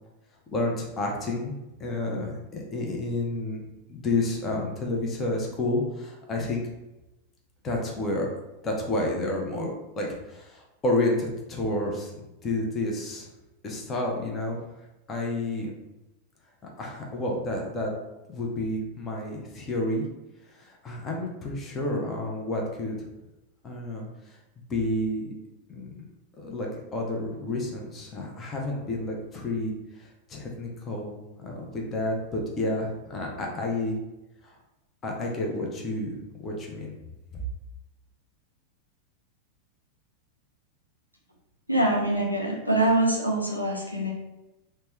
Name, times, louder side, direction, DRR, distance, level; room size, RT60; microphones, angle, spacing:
voice 1, 0.5-1.5 1.8-3.6 3.9-6.6 7.6-8.3 8.6-12.1 12.4-13.3 13.6-14.6 15.1-15.7 16.8-17.9 18.3-20.1 20.6-22.9 23.6-24.0 24.7-25.3 25.7-26.0 26.4-29.7 30.3-34.0 35.0-36.1 36.4-36.9, left 2 dB, 25° left, -1 dB, 0.7 m, -30 dB
voice 2, 41.7-44.1, right 1 dB, 90° left, -2 dB, 0.6 m, -24 dB
3.2 x 2.2 x 3.0 m, 0.97 s
figure-of-eight pair, 90°, 0 cm